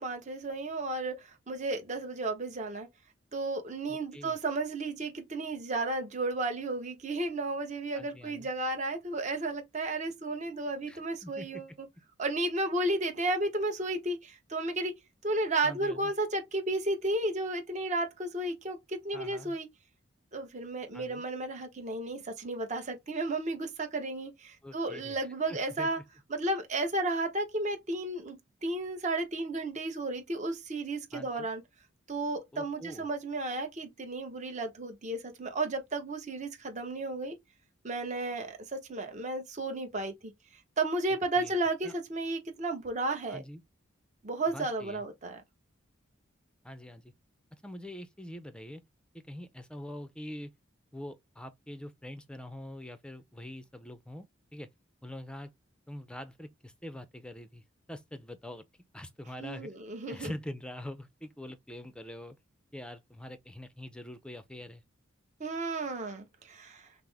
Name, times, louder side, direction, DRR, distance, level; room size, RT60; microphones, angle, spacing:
voice 1, 0.0-2.9 3.3-11.9 12.2-14.9 15.2-19.7 20.3-26.0 26.3-31.6 32.1-37.4 37.8-40.3 40.8-43.4 44.2-45.4 59.4-60.3 65.4-66.9, right 2 dB, 35° right, 0.9 m, -33 dB
voice 2, 3.9-4.4 7.9-8.5 10.9-11.6 15.6-16.1 19.1-19.6 20.9-21.2 24.6-25.2 25.5-26.0 31.1-31.5 32.5-33.1 41.1-41.6 41.8-41.9 43.3-43.6 44.5-45.0 46.6-47.1 47.6-48.8 49.2-50.5 50.9-54.7 55.0-55.5 55.9-57.6 57.9-58.6 58.9-59.7 60.1-62.4 62.7-64.8, left 1 dB, 5° left, 0.5 m, -44 dB
5.9 x 2.0 x 3.3 m
head